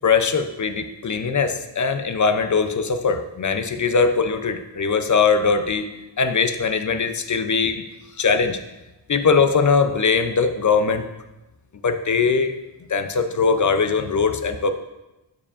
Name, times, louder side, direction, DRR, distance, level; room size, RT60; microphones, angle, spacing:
voice 1, 0.0-5.9 6.2-7.8 8.2-8.6 9.1-11.1 11.8-12.5 12.9-14.7, left 5 dB, 45° left, 9 dB, 0.5 m, -21 dB
12.0 x 4.8 x 2.4 m, 1.0 s
wide cardioid pair, 95°, 45 cm